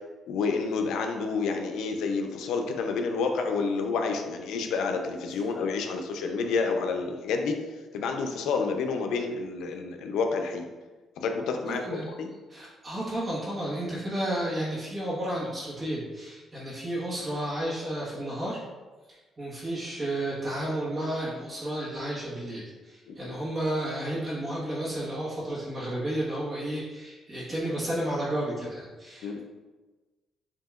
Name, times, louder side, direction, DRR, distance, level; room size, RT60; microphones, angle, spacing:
voice 1, 0.3-7.6 7.9-10.7 11.2-12.3 23.1-23.3 29.2-29.4, left 4 dB, 85° left, 4 dB, 0.5 m, -29 dB
voice 2, 11.7-12.1 12.5-18.6 19.1-29.4, right 1 dB, 30° right, -8 dB, 1.4 m, -32 dB
7.2 x 2.8 x 2.4 m, 1.3 s
cardioid pair, 90°, 0 cm